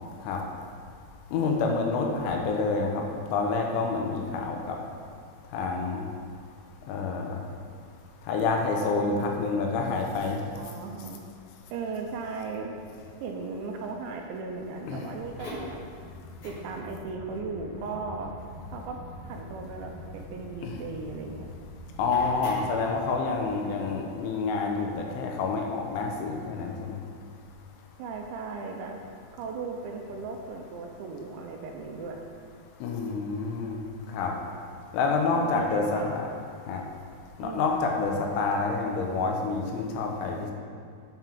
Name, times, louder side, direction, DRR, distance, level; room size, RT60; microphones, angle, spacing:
voice 1, 1.3-4.8 5.5-6.0 6.9-7.4 8.3-10.4 14.9-15.0 20.6-20.8 22.0-27.0 32.8-33.8 34.1-34.3 34.9-36.3 36.7-36.8 37.4-40.5, left 4 dB, 85° left, 1 dB, 3.4 m, -28 dB
voice 2, 9.1-9.7 10.6-11.2 11.7-12.8 13.2-15.9 16.4-18.3 18.7-19.0 19.2-21.5 28.0-29.0 29.4-32.2 35.3-36.3 37.4-37.8, right 4 dB, 80° right, 2 dB, 2.9 m, -37 dB
sound 1, 15.2-23.4, left 1 dB, 45° left, 3.2 m, -43 dB
8.9 x 5.8 x 6.1 m, 2.2 s
omnidirectional pair, 5.5 m